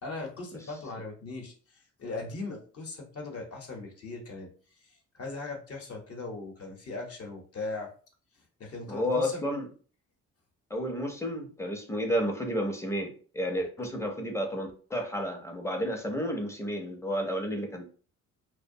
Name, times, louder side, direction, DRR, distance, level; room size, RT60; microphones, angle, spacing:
voice 1, 0.0-4.5 4.8-7.9 8.6-9.4, left 3 dB, 50° left, 1 dB, 0.8 m, -39 dB
voice 2, 8.9-9.7 10.7-17.9, equal, 10° left, 3 dB, 0.5 m, -31 dB
2.5 x 2.1 x 2.6 m, 0.41 s
cardioid pair, 90°, 30 cm